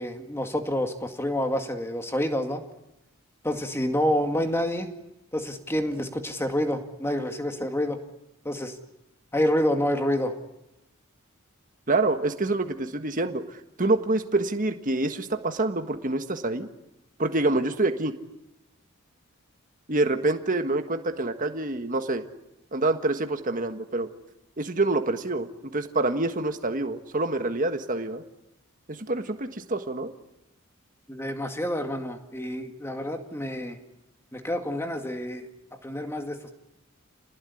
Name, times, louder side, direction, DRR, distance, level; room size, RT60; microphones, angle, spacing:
voice 1, 0.0-2.6 3.4-4.9 5.3-8.0 8.4-8.8 9.3-10.3 31.1-33.8 34.3-35.5 35.8-36.5, left 1 dB, 10° left, 5 dB, 2.2 m, -28 dB
voice 2, 11.9-16.7 17.2-18.1 19.9-22.2 22.7-24.1 24.6-28.2 28.9-30.1, right 2 dB, 40° right, 7 dB, 1.6 m, -26 dB
28.5 x 19.5 x 9.8 m, 0.93 s
head